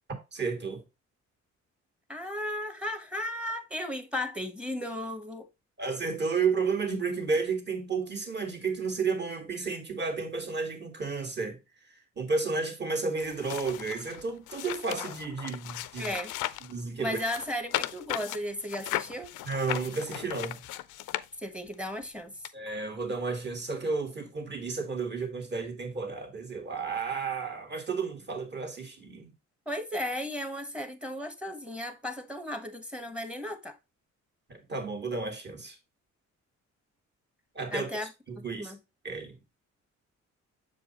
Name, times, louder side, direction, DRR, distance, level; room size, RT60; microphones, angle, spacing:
voice 1, 0.3-0.8 5.8-11.6 11.9-16.2 16.6-17.2 19.4-20.6 22.5-29.3 34.5-35.8 37.6-37.9 38.3-38.7 39.0-39.4, right 4 dB, 35° right, 1.8 m, -32 dB
voice 2, 2.1-5.5 16.0-16.3 17.0-19.3 21.4-22.4 29.7-33.8 37.7-38.1 38.4-38.8, left 1 dB, 5° right, 1.0 m, -35 dB
sound 1, 13.2-16.7 17.1-21.7 22.4-22.5, left 15 dB, 90° left, 0.5 m, -37 dB
6.7 x 4.8 x 2.9 m
cardioid pair, 90°, 30 cm